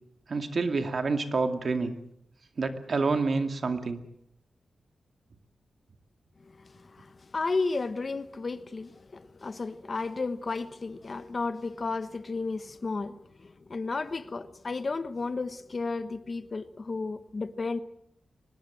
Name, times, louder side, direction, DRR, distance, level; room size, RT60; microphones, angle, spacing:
voice 1, 0.3-2.0 2.6-4.0, right 4 dB, 55° right, 2.3 m, -28 dB
voice 2, 6.8-13.1 13.4-17.8, left 3 dB, 40° left, 1.2 m, -33 dB
24.0 x 20.0 x 7.7 m
wide cardioid pair, 85°, 0 cm